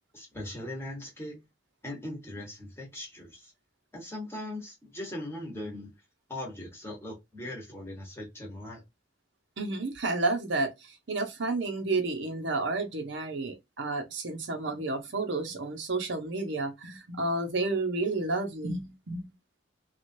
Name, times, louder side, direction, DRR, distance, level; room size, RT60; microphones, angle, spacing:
voice 1, 0.1-1.4 1.8-3.5 3.9-5.9 6.3-8.8, left 1 dB, 10° left, 1.0 m, -39 dB
voice 2, 9.6-19.3, right 3 dB, 65° right, 0.8 m, -31 dB
3.0 x 2.4 x 2.5 m
head